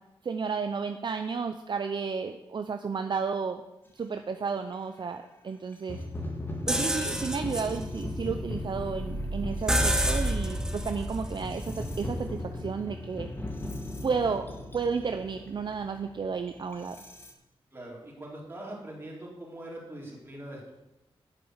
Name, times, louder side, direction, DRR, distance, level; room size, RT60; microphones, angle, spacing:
voice 1, 0.2-3.6 3.9-6.0 6.7-13.3 14.0-14.5 14.7-17.0, right 5 dB, 50° right, 7 dB, 0.6 m, -32 dB
sound 1, 4.7-4.8 5.7-17.3, left 1 dB, 20° left, 1.9 m, -38 dB
sound 2, 6.7-12.5, right 1 dB, 5° right, 1.0 m, -31 dB
voice 2, 17.7-20.7, right 1 dB, 20° right, -3 dB, 4.0 m, -42 dB
9.1 x 7.1 x 8.1 m, 0.95 s
wide cardioid pair, 115°, 10 cm